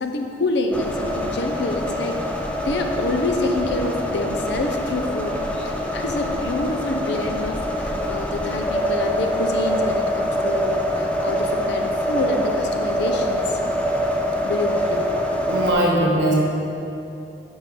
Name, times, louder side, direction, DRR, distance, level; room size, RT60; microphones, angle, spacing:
voice 1, 0.0-2.2 2.6-13.6 14.4-15.7, left 2 dB, 70° left, 4 dB, 0.6 m, -27 dB
sound 1, 0.7-15.7, equal, 5° left, 0.5 m, -24 dB
voice 2, 15.5-16.3, right 1 dB, 85° right, -3 dB, 1.5 m, -20 dB
8.8 x 5.4 x 3.7 m, 2.8 s
head